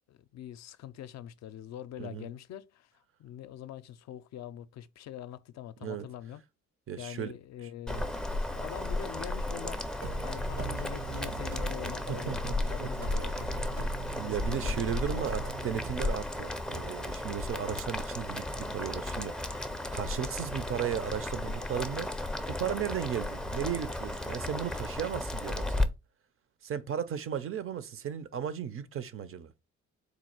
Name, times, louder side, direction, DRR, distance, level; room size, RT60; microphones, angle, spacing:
voice 1, 0.1-6.4 7.0-14.8 15.1-15.7, left 11 dB, 60° left, 0.4 m, -44 dB
voice 2, 2.0-2.3 5.8-6.1 6.9-7.3 12.1-12.5 12.8-12.9 14.2-22.1 22.5-25.9 26.6-29.5, right 9 dB, 45° right, 0.5 m, -35 dB
Boiling, 7.9-25.8, left 1 dB, 5° left, 0.4 m, -34 dB
sound 1, 10.0-16.0, right 5 dB, 75° right, 1.1 m, -41 dB
4.0 x 2.3 x 4.4 m
cardioid pair, 90°, 30 cm